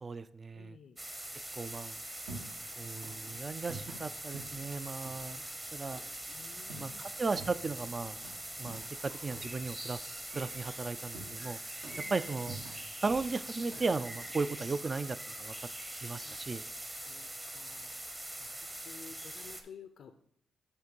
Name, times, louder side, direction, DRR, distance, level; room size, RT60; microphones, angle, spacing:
voice 1, 0.0-0.7 1.6-1.9 2.8-5.4 5.7-6.0 6.8-8.2 8.6-10.0 10.3-11.6 12.1-12.6 13.0-15.5 16.0-16.7, right 4 dB, 35° right, 15 dB, 0.3 m, -36 dB
voice 2, 0.5-1.0 5.3-5.6 6.3-7.1 11.9-12.3 16.2-16.4 16.9-18.0 18.4-20.2, left 7 dB, 70° left, 7 dB, 0.4 m, -54 dB
sound 1, 1.0-19.6, right 1 dB, 20° right, 0.7 m, -43 dB
sound 2, 2.0-15.3, right 3 dB, 80° right, 1.4 m, -51 dB
8.2 x 2.9 x 5.3 m, 0.67 s
cardioid pair, 70°, 0 cm